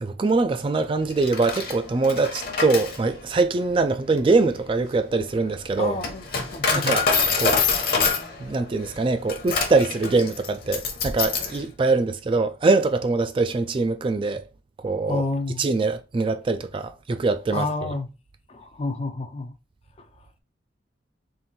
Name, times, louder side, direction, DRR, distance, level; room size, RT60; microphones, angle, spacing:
voice 1, 0.0-5.9 6.7-7.0 7.4-7.6 8.4-14.4 14.8-15.2 15.6-17.7, right 3 dB, 30° right, 0.3 m, -23 dB
Coin (dropping), 1.1-11.6, left 5 dB, 55° left, 1.0 m, -26 dB
voice 2, 5.8-7.0 15.0-15.7 17.5-18.1 18.5-19.6 20.0-20.3, left 2 dB, 35° left, 0.4 m, -30 dB
3.7 x 2.5 x 4.1 m
head